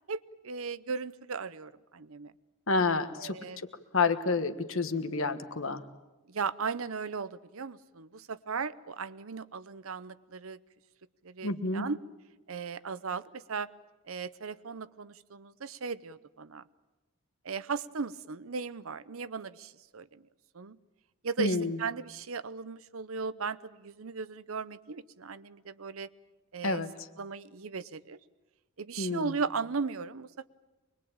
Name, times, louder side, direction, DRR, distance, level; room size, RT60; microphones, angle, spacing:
voice 1, 0.1-2.3 3.2-3.6 6.3-10.6 11.2-12.0 12.5-13.7 14.1-16.6 17.4-20.2 20.5-20.8 21.2-26.1 26.5-26.8 27.2-28.2 28.8-30.5, right 5 dB, 70° right, 16 dB, 0.8 m, -37 dB
voice 2, 2.7-3.4 3.9-5.8 11.4-11.9 21.4-21.8 26.6-26.9 29.0-29.3, left 3 dB, 65° left, 9 dB, 1.4 m, -29 dB
24.0 x 22.0 x 8.8 m, 1.1 s
head